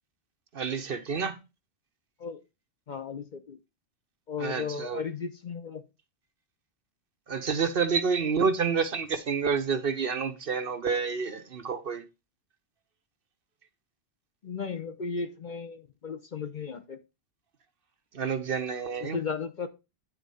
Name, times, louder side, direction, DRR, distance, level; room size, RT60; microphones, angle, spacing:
voice 1, 0.5-1.4 4.4-5.0 7.3-12.0 18.1-19.2, right 5 dB, 55° right, 1.0 m, -29 dB
voice 2, 2.9-3.6 4.3-5.8 14.4-17.0 19.0-19.7, left 5 dB, 45° left, 0.8 m, -35 dB
9.6 x 4.1 x 5.4 m
omnidirectional pair, 1.2 m